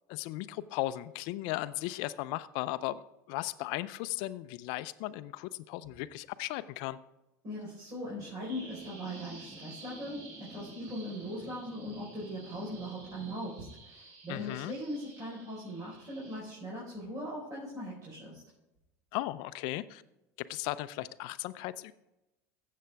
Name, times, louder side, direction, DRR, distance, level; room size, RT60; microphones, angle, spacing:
voice 1, 0.1-3.0 3.3-7.0 14.3-14.7 19.1-20.0 20.5-21.9, left 16 dB, 65° left, 16 dB, 0.5 m, -36 dB
voice 2, 7.4-18.4, equal, 40° right, -6 dB, 4.5 m, -40 dB
sound 1, 8.2-13.5, right 1 dB, 10° right, 0.7 m, -51 dB
Bird vocalization bird call bird song, 8.4-16.4, right 3 dB, 70° right, 3.1 m, -53 dB
15.5 x 7.6 x 3.5 m, 0.94 s
hypercardioid pair, 95°, 9 cm